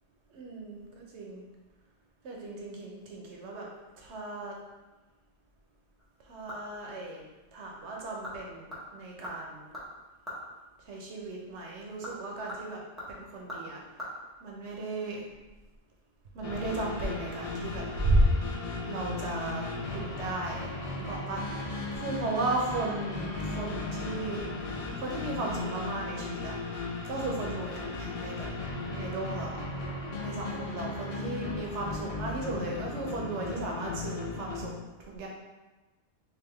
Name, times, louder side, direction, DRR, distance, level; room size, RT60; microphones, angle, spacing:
voice 1, 0.3-1.4 2.2-3.7 4.0-4.5 6.3-7.2 7.5-9.8 10.9-12.8 13.1-13.8 14.4-15.2 16.3-18.2 18.9-24.5 25.0-26.6 27.0-28.5 28.9-29.7 30.2-34.7 35.0-35.3, right 2 dB, 75° right, -1 dB, 1.0 m, -35 dB
sound 1, 6.0-6.9 7.2-7.3 8.0-8.4 8.7-10.5 11.8-14.1 14.4-14.5, left 1 dB, ahead, 0.9 m, -43 dB
sound 2, 16.4-34.7, left 3 dB, 45° left, 0.5 m, -36 dB
3.5 x 2.7 x 3.4 m, 1.1 s
omnidirectional pair, 1.2 m